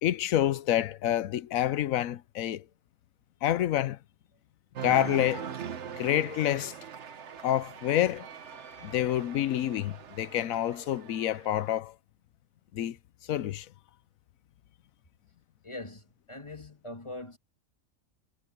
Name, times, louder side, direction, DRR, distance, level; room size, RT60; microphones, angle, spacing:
voice 1, 0.0-2.6 3.4-4.0 4.8-5.5 6.0-6.7 7.4-8.3 8.8-11.9 12.7-13.0 13.3-13.7, left 12 dB, 85° left, 1.1 m, -28 dB
Cheering, 4.7-11.8, right 8 dB, 60° right, 1.3 m, -42 dB
voice 2, 15.6-17.4, left 2 dB, 20° left, 2.1 m, -42 dB
omnidirectional pair, 1.4 m